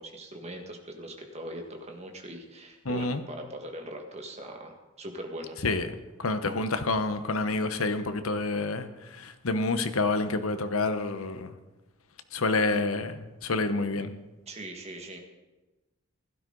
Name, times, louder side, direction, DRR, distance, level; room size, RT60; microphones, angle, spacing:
voice 1, 0.0-5.5 14.5-15.2, right 1 dB, 30° right, 1.7 m, -41 dB
voice 2, 2.8-3.2 5.6-5.9 6.2-11.5 12.3-14.1, left 3 dB, 80° left, 1.0 m, -28 dB
16.0 x 12.5 x 3.9 m
head